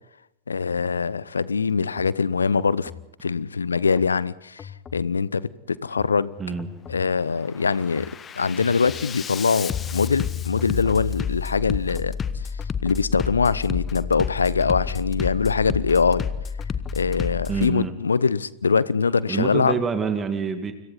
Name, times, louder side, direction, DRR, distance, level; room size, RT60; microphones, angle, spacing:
voice 1, 0.5-2.9 3.2-6.3 6.9-8.1 8.3-12.2 12.8-16.3 16.9-19.8, left 5 dB, 75° left, 0.8 m, -23 dB
Bass drum, 1.9-2.1 2.6-3.1 3.9-4.1 4.6-5.1 5.9-6.1 6.6-7.1 7.5-17.7, left 7 dB, 25° left, 1.1 m, -31 dB
voice 2, 17.5-17.9 19.3-20.7, right 5 dB, 20° right, 2.2 m, -26 dB
30.0 x 26.0 x 4.1 m
figure-of-eight pair, 90°, 0 cm